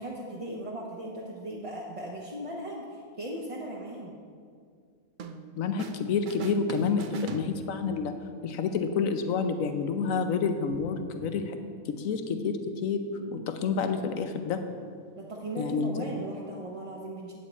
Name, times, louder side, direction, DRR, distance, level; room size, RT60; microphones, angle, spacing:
voice 1, 0.0-4.2 13.1-13.5 15.1-17.3, right 1 dB, 30° right, -3 dB, 0.7 m, -38 dB
sound 1, 5.2-6.0 6.3-8.0, right 5 dB, 65° right, 0.5 m, -40 dB
voice 2, 5.6-8.1 8.4-11.6 11.9-13.0 13.3-14.6 15.6-16.1, left 5 dB, 75° left, 7 dB, 1.1 m, -29 dB
9.3 x 8.5 x 4.2 m, 2.1 s
omnidirectional pair, 1.5 m